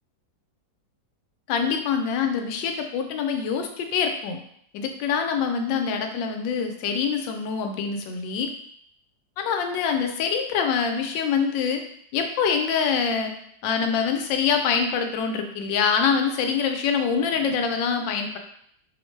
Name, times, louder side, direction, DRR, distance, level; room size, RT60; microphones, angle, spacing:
voice 1, 1.5-4.4 4.7-8.5 9.4-11.8 12.1-13.3 13.6-18.4, left 6 dB, 85° left, 5 dB, 1.3 m, -25 dB
4.8 x 2.1 x 3.1 m, 0.68 s
omnidirectional pair, 2.0 m